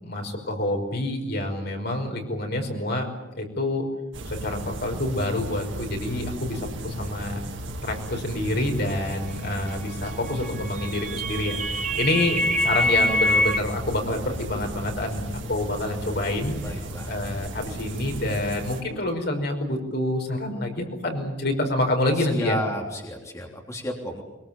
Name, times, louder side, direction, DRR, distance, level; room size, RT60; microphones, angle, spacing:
voice 1, 0.0-3.1 3.3-3.9 4.3-7.4 7.8-16.6 17.1-22.6, left 1 dB, 55° left, 3 dB, 5.4 m, -27 dB
sound 1, 4.1-18.8, right 1 dB, 70° right, 2.5 m, -35 dB
sound 2, 10.4-13.6, left 1 dB, 40° right, 1.2 m, -24 dB
voice 2, 16.6-17.2 22.2-24.2, equal, 15° left, 0 dB, 3.3 m, -32 dB
23.5 x 23.0 x 9.1 m, 0.97 s
head